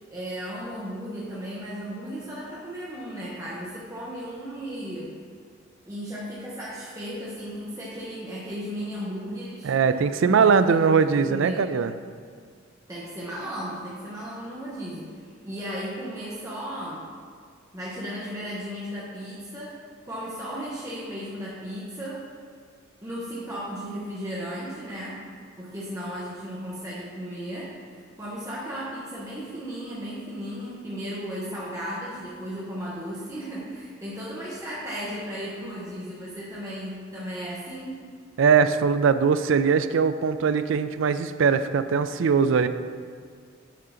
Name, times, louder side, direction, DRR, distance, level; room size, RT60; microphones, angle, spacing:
voice 1, 0.1-5.1 5.9-9.7 10.2-11.7 12.9-15.1 15.4-17.0 17.7-19.8 20.0-22.2 23.0-25.2 25.6-27.7 28.2-38.0, equal, 15° right, -7 dB, 1.0 m, -35 dB
voice 2, 9.6-11.9 38.4-42.7, right 6 dB, 70° right, 11 dB, 0.4 m, -21 dB
8.4 x 3.8 x 5.7 m, 2.1 s
head